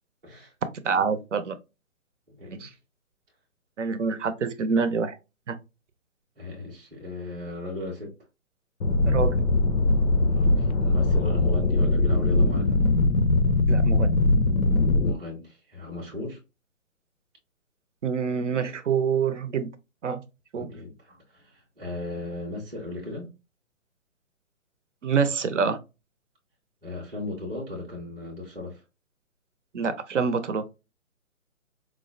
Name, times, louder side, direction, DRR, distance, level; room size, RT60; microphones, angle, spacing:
voice 1, 0.8-1.6 2.5-2.7 3.8-5.2 5.5-5.6 9.0-9.4 13.7-14.1 18.0-19.7 20.0-20.2 20.5-20.7 25.0-25.8 29.7-30.6, right 5 dB, 60° right, 0.6 m, -26 dB
voice 2, 2.3-2.7 6.4-8.1 10.2-12.8 14.9-16.4 20.6-23.3 26.8-28.8, left 2 dB, 5° right, 0.5 m, -36 dB
sound 1, 8.8-15.1, left 2 dB, 85° left, 0.7 m, -21 dB
4.6 x 2.1 x 2.5 m
figure-of-eight pair, 140°, 42 cm